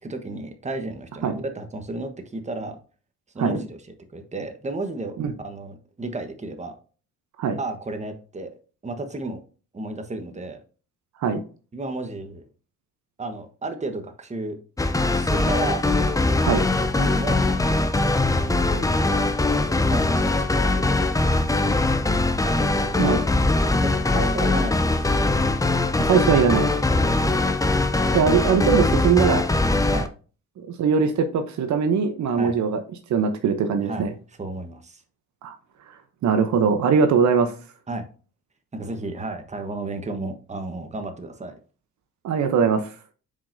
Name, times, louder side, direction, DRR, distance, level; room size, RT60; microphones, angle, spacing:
voice 1, 0.0-2.8 3.3-3.8 4.1-6.8 7.6-8.5 8.8-9.4 9.7-10.6 11.7-12.4 13.2-14.6 15.1-15.9 16.9-17.8 18.3-19.3 19.9-21.0 22.4-23.2 23.8-25.1 26.9-27.3 29.9-30.1 32.4-32.5 33.9-34.1 34.4-35.0 37.9-38.1 38.7-41.5, right 2 dB, 20° right, 6 dB, 1.2 m, -33 dB
sound 1, 14.8-30.1, left 2 dB, 10° left, 0.6 m, -21 dB
voice 2, 26.0-26.7 28.1-29.5 30.6-32.8 33.1-34.1 35.4-35.6 36.2-37.5 42.2-42.9, right 6 dB, 65° right, 8 dB, 0.9 m, -21 dB
6.9 x 5.1 x 2.7 m, 0.37 s
cardioid pair, 80°, 30 cm